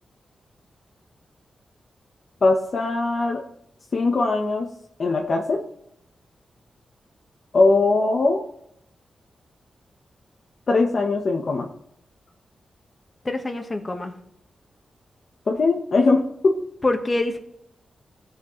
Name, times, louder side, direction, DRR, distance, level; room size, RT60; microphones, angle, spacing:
voice 1, 2.4-3.4 3.9-4.7 5.0-5.6 7.5-8.4 10.7-11.7 15.5-16.6, left 3 dB, 55° left, 1 dB, 1.0 m, -20 dB
voice 2, 13.2-14.1 16.8-17.4, left 2 dB, 25° left, 5 dB, 1.3 m, -25 dB
15.5 x 6.1 x 3.1 m, 0.74 s
wide cardioid pair, 95°, 0 cm